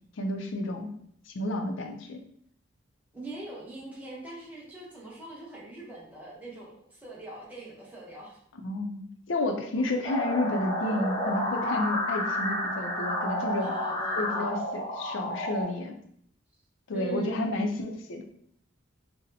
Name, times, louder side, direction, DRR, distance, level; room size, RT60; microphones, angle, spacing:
voice 1, 0.2-0.9 1.3-2.2 8.6-13.7 14.2-16.0 16.9-18.2, left 2 dB, 70° left, 5 dB, 0.5 m, -31 dB
voice 2, 3.1-8.4 9.7-10.0 13.6-14.5 16.9-17.4, right 1 dB, 10° right, -6 dB, 0.8 m, -41 dB
sound 1, 10.0-15.6, left 1 dB, 25° left, 0.6 m, -30 dB
4.0 x 2.0 x 2.7 m, 0.66 s
head